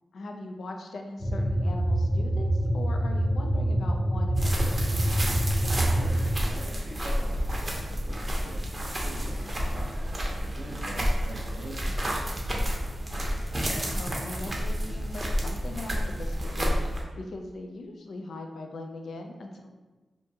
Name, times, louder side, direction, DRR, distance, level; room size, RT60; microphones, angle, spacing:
voice 1, 0.1-5.2 10.8-11.1 13.8-19.7, left 2 dB, 80° left, 3 dB, 0.3 m, -40 dB
sound 1, 1.2-6.3, right 1 dB, 30° left, 0.7 m, -26 dB
sound 2, 4.4-17.0, equal, 40° right, 0.6 m, -30 dB
voice 2, 5.8-12.8, right 1 dB, 85° right, -4 dB, 0.7 m, -44 dB
2.6 x 2.3 x 2.7 m, 1.2 s
cardioid pair, 45°, 0 cm